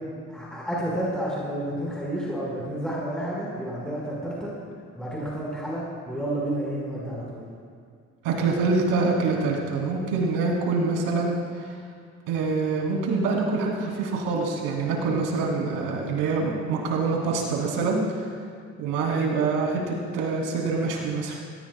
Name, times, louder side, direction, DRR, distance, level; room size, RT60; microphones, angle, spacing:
voice 1, 0.3-4.5 4.9-7.4, right 1 dB, ahead, -6 dB, 4.8 m, -30 dB
voice 2, 8.2-11.4 12.3-18.0 18.8-21.4, right 4 dB, 90° right, -1 dB, 3.4 m, -25 dB
23.0 x 19.0 x 2.4 m, 2.1 s
supercardioid pair, 85°, 33 cm